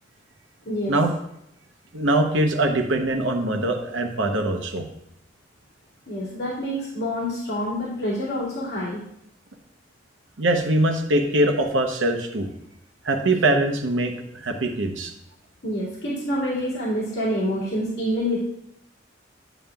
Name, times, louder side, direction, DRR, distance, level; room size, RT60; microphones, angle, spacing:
voice 1, 1.9-4.8 10.4-12.5 13.0-15.1, right 1 dB, 75° right, 5 dB, 0.9 m, -22 dB
voice 2, 6.1-9.0 15.6-18.4, equal, 55° left, -9 dB, 2.4 m, -27 dB
10.0 x 7.1 x 2.3 m, 0.77 s
head